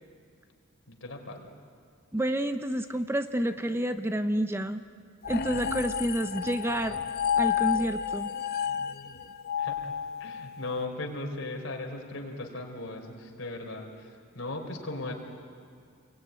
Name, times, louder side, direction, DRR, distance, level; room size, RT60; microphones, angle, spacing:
voice 1, 0.9-1.5 9.6-9.9 10.2-14.1 14.3-15.1, left 2 dB, 60° left, 2 dB, 4.1 m, -37 dB
voice 2, 2.1-4.8 5.3-7.0 7.4-8.3, right 1 dB, 10° right, 9 dB, 0.6 m, -29 dB
sound 1, 5.2-10.7, left 8 dB, 45° left, 1.0 m, -31 dB
28.0 x 22.0 x 9.6 m, 2.3 s
head